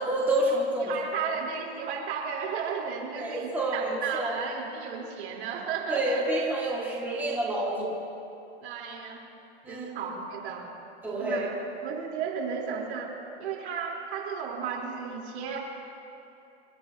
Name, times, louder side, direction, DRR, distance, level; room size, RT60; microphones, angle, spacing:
voice 1, 0.0-0.9 1.2-1.3 3.2-4.3 5.9-7.9 9.6-9.9 11.0-11.5, right 1 dB, 5° right, -6 dB, 2.2 m, -28 dB
voice 2, 0.8-6.3 7.2-7.3 8.6-9.3 9.7-10.7 11.2-11.6 11.8-13.1 13.4-15.6, right 6 dB, 65° right, -2 dB, 4.2 m, -34 dB
28.5 x 13.5 x 3.0 m, 2.8 s
supercardioid pair, 160°, 35 cm